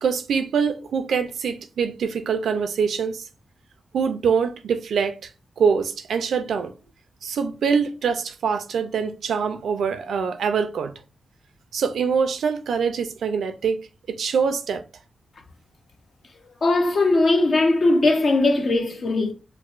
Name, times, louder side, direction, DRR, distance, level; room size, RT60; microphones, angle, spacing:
voice 1, 0.0-3.3 3.9-5.3 5.6-6.7 7.2-10.9 11.7-13.8 14.1-14.8, right 6 dB, 90° right, 0.4 m, -24 dB
voice 2, 16.6-19.3, left 2 dB, 60° left, 0.7 m, -19 dB
4.6 x 2.1 x 2.4 m
cardioid pair, 80°, 0 cm